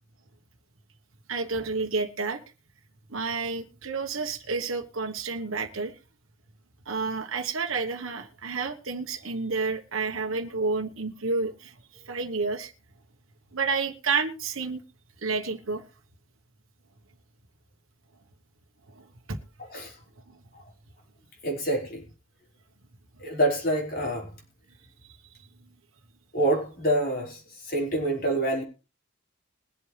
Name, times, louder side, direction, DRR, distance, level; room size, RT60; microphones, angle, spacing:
voice 1, 1.3-2.4 3.1-6.0 6.9-11.7 12.1-12.7 13.5-14.8 15.2-15.8 18.9-19.4, right 4 dB, 70° right, 3 dB, 1.3 m, -30 dB
voice 2, 19.6-20.0 20.5-20.6 21.4-22.0 23.2-24.3 26.3-28.6, right 1 dB, 45° left, 0 dB, 5.0 m, -27 dB
21.5 x 7.9 x 3.4 m, 0.31 s
head